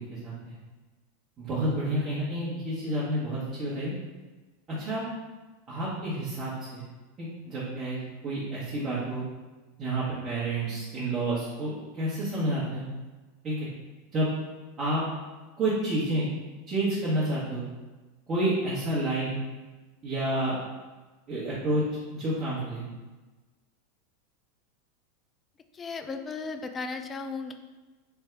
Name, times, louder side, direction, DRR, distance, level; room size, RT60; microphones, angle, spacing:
voice 1, 0.1-0.5 1.4-3.9 4.7-5.0 5.7-6.8 7.2-9.2 9.8-12.9 13.4-13.7 14.1-14.3 14.8-15.0 15.6-16.2 16.7-17.6 18.3-19.4 20.0-20.6 21.3-21.8 22.1-22.8, right 1 dB, 30° right, -9 dB, 1.1 m, -29 dB
voice 2, 25.7-27.5, left 4 dB, 25° left, 7 dB, 0.3 m, -35 dB
3.5 x 2.7 x 3.5 m, 1.2 s
figure-of-eight pair, 85°, 0 cm